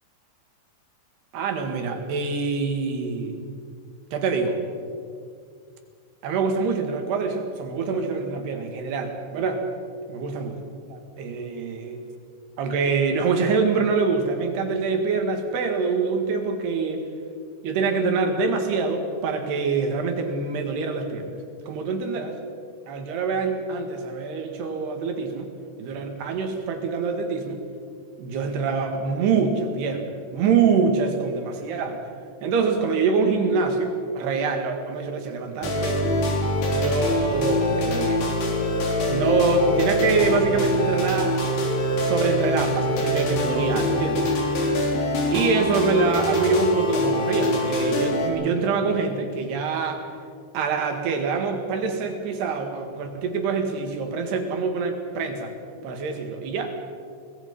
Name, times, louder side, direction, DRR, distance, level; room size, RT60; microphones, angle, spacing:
voice 1, 1.3-3.4 4.1-4.6 6.2-9.6 10.1-10.6 10.9-12.0 12.6-17.0 17.6-21.3 21.7-22.4 22.9-25.5 25.8-27.6 28.2-32.0 32.4-36.1 36.7-38.3 39.1-41.3 42.0-44.3 45.3-50.0 50.5-55.5 55.8-56.7, right 4 dB, 75° right, 4 dB, 4.1 m, -25 dB
sound 1, 35.6-48.3, left 1 dB, 70° left, 5.1 m, -24 dB
24.0 x 20.0 x 5.5 m, 2.2 s
omnidirectional pair, 4.8 m